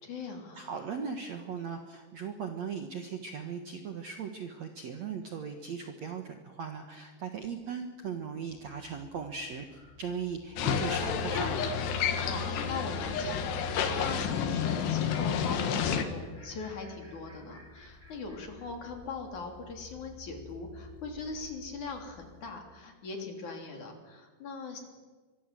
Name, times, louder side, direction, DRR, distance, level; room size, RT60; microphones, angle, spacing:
voice 1, 0.0-0.7 12.1-13.6 13.9-24.8, left 4 dB, 45° left, 3 dB, 4.2 m, -40 dB
voice 2, 0.6-11.7, right 6 dB, 90° right, 5 dB, 1.5 m, -38 dB
sound 1, 8.5-22.5, left 4 dB, 10° left, 7.6 m, -54 dB
sound 2, 10.6-16.0, left 7 dB, 65° left, 3.6 m, -30 dB
24.5 x 23.5 x 7.6 m, 1.4 s
omnidirectional pair, 5.4 m